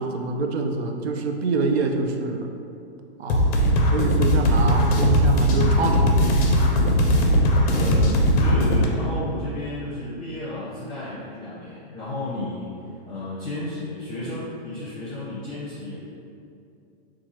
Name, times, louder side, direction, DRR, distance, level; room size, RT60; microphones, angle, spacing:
voice 1, 0.0-2.5 3.2-3.6 3.8-6.6, right 3 dB, 85° right, 4 dB, 0.5 m, -26 dB
sound 1, 3.3-8.9, equal, 40° left, 0.5 m, -19 dB
voice 2, 7.7-12.7 13.1-16.0, left 1 dB, 15° left, -12 dB, 0.7 m, -32 dB
4.5 x 2.4 x 2.8 m, 2.5 s
hypercardioid pair, 155°, 31 cm